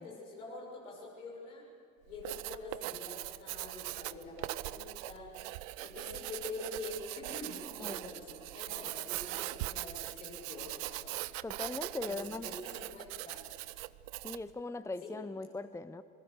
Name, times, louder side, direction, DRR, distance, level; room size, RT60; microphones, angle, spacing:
voice 1, 0.0-1.6 2.0-5.3 5.8-11.2 12.0-12.1 12.4-13.4 15.0-15.1, left 3 dB, 80° left, -2 dB, 6.6 m, -46 dB
Writing, 2.1-14.5, right 19 dB, 70° right, 0.7 m, -41 dB
voice 2, 7.8-8.1 11.4-12.5 14.2-16.0, left 3 dB, 5° left, 13 dB, 0.8 m, -40 dB
27.0 x 22.5 x 6.9 m, 2.1 s
figure-of-eight pair, 50°, 41 cm